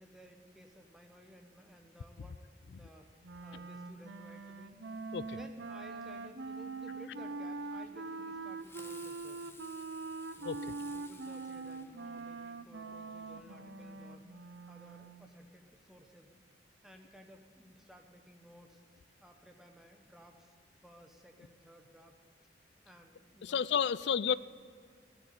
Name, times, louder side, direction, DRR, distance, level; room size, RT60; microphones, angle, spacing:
voice 1, 0.0-2.4 2.7-4.9 5.3-9.5 10.3-16.3 16.8-20.6 20.8-22.5 22.8-23.6, equal, ahead, 2 dB, 1.1 m, -57 dB
Wind instrument woodwind instrument, 3.2-15.3, right 3 dB, 75° right, 0.7 m, -43 dB
Fireworks, 8.6-12.5, left 4 dB, 15° left, 0.7 m, -56 dB
voice 2, 23.4-24.3, left 7 dB, 70° left, 17 dB, 0.4 m, -31 dB
13.5 x 8.3 x 8.3 m, 2.1 s
head